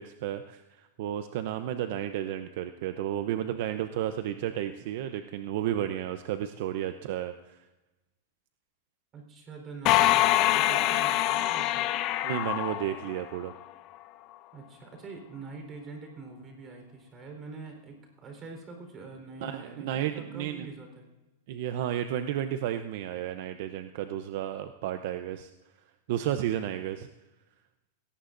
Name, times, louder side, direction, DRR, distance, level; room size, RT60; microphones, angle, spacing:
voice 1, 0.0-7.6 12.2-13.5 19.4-20.7 21.5-25.5 26.1-27.1, right 11 dB, 55° right, 9 dB, 0.7 m, -32 dB
voice 2, 9.1-11.9 14.5-21.1, right 4 dB, 25° right, 3 dB, 4.0 m, -45 dB
sound 1, 9.9-13.5, left 15 dB, 35° left, 0.7 m, -25 dB
21.0 x 18.0 x 2.6 m, 1.1 s
supercardioid pair, 155°, 0 cm